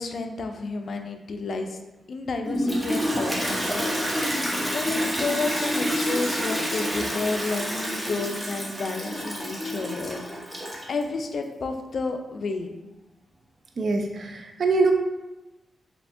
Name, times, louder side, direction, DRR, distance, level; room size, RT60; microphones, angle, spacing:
voice 1, 0.0-1.8 2.1-10.2 10.9-12.7, left 3 dB, 65° left, 6 dB, 0.3 m, -31 dB
Toilet flush, 2.4-11.0, equal, 10° right, 0.8 m, -28 dB
voice 2, 13.8-14.9, right 3 dB, 65° right, 3 dB, 0.3 m, -23 dB
3.3 x 2.7 x 2.5 m, 1.0 s
cardioid pair, 65°, 0 cm